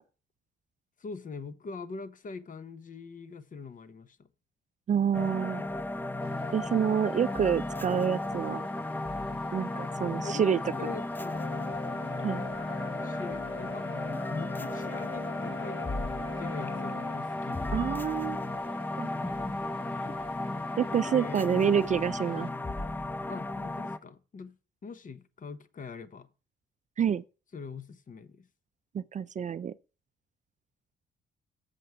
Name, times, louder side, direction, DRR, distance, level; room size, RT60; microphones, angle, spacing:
voice 1, 1.0-4.3 10.2-11.5 13.0-14.0 14.3-15.8 16.4-17.8 19.1-19.2 21.0-21.9 23.3-24.6 24.8-26.3 27.5-28.5, left 5 dB, 40° left, 1.0 m, -43 dB
voice 2, 4.9-5.6 6.5-8.6 9.5-10.6 12.2-12.5 17.7-18.5 19.0-19.1 20.8-22.5 27.0-27.2 28.9-29.7, right 7 dB, 40° right, 0.4 m, -27 dB
sound 1, 5.1-24.0, left 2 dB, 10° left, 0.6 m, -34 dB
sound 2, 6.2-22.5, left 2 dB, 25° left, 1.5 m, -50 dB
sound 3, 11.3-17.2, left 5 dB, 65° left, 1.5 m, -42 dB
7.7 x 6.7 x 4.6 m
cardioid pair, 90°, 20 cm